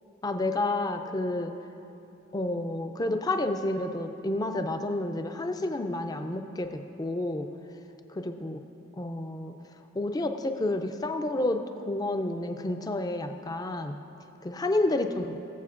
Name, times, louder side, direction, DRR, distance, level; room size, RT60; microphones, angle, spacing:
voice 1, 0.2-1.5 2.3-7.5 8.1-8.6 9.0-9.5 9.9-14.0 14.4-15.4, left 2 dB, 20° left, 7 dB, 0.4 m, -30 dB
19.0 x 7.6 x 2.5 m, 3.0 s
head